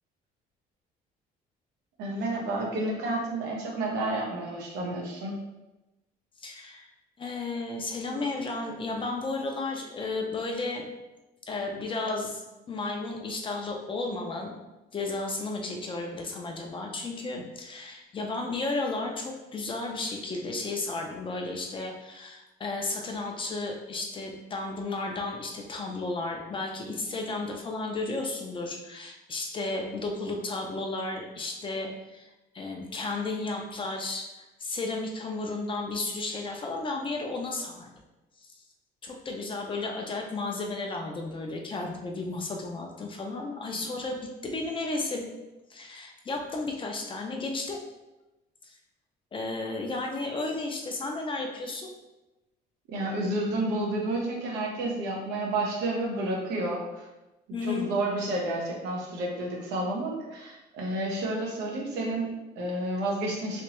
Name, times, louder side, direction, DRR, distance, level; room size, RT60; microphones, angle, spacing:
voice 1, 2.0-5.4 52.9-57.1 57.6-63.6, right 2 dB, 90° right, -1 dB, 0.9 m, -30 dB
voice 2, 6.4-6.9 7.2-10.8 11.5-14.5 14.9-37.9 38.4-38.5 39.0-44.2 44.4-45.2 45.7-47.8 48.6-48.7 49.3-51.9 57.5-57.9, left 3 dB, 30° left, 1 dB, 0.6 m, -33 dB
3.3 x 2.9 x 3.0 m, 1.0 s
cardioid pair, 110°, 17 cm